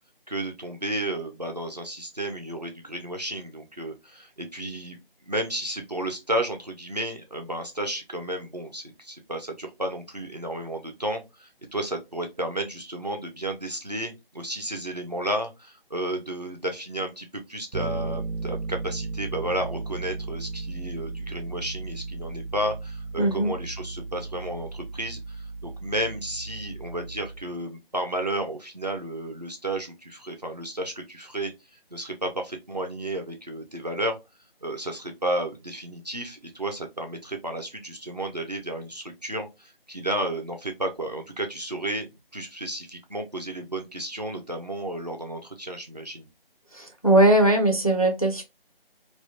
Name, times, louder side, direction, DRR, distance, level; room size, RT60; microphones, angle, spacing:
voice 1, 0.3-31.5 31.9-34.2 34.6-46.3, right 1 dB, 45° right, 0.4 m, -32 dB
Bass guitar, 17.7-27.6, right 3 dB, 90° right, 0.6 m, -35 dB
voice 2, 23.2-23.5 46.7-48.4, right 1 dB, 40° left, 0.4 m, -20 dB
2.2 x 2.1 x 2.7 m
figure-of-eight pair, 165°, 30 cm